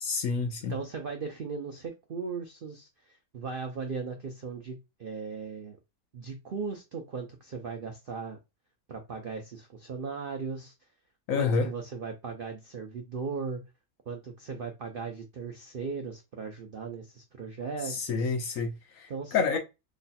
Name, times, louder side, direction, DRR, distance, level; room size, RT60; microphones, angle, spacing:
voice 1, 0.0-0.8 11.3-11.7 17.8-19.6, left 5 dB, 70° left, 0.8 m, -29 dB
voice 2, 0.7-5.8 6.1-8.4 8.9-10.7 11.3-13.6 14.1-18.3 19.1-19.6, right 5 dB, 70° right, 0.5 m, -37 dB
3.1 x 2.2 x 4.1 m
omnidirectional pair, 1.8 m